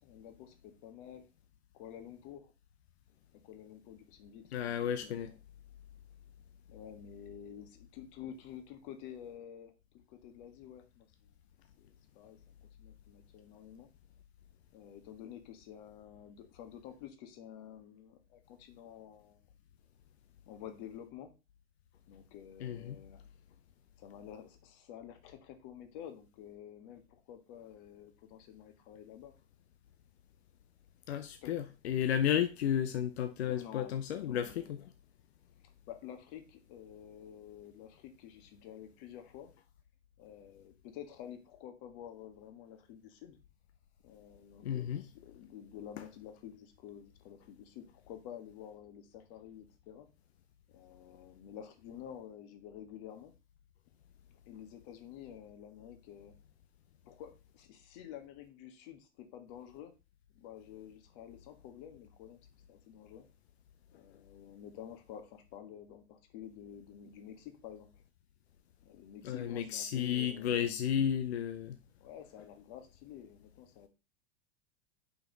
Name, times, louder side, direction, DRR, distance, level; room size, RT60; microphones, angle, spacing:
voice 1, 0.0-1.3 1.7-2.5 3.4-5.4 6.7-11.3 11.8-12.4 12.8-13.9 14.7-19.4 20.5-21.3 22.1-23.3 24.0-29.4 31.4-31.5 33.5-34.9 35.9-39.5 40.2-43.4 44.0-50.1 50.7-53.3 54.5-56.3 57.0-59.9 60.3-62.4 62.7-63.2 63.9-67.9 68.8-70.7 72.0-73.9, left 9 dB, 45° left, 1.5 m, -50 dB
voice 2, 4.5-5.3 22.6-23.0 31.1-34.8 44.6-45.0 69.2-71.8, left 9 dB, 65° left, 0.7 m, -33 dB
5.8 x 5.3 x 3.9 m
figure-of-eight pair, 90°, 34 cm